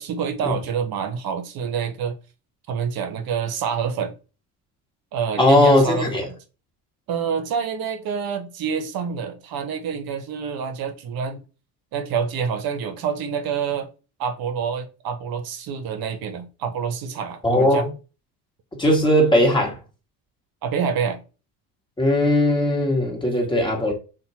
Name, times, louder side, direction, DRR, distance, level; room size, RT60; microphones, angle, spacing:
voice 1, 0.0-2.2 2.7-4.1 5.1-6.3 7.1-11.4 11.9-13.9 14.2-17.9 20.6-21.2, right 6 dB, 50° right, 0.7 m, -27 dB
voice 2, 5.4-6.3 17.4-17.9 18.8-19.8 22.0-23.9, left 1 dB, 10° left, 1.2 m, -18 dB
2.8 x 2.2 x 2.7 m
hypercardioid pair, 70°, 47 cm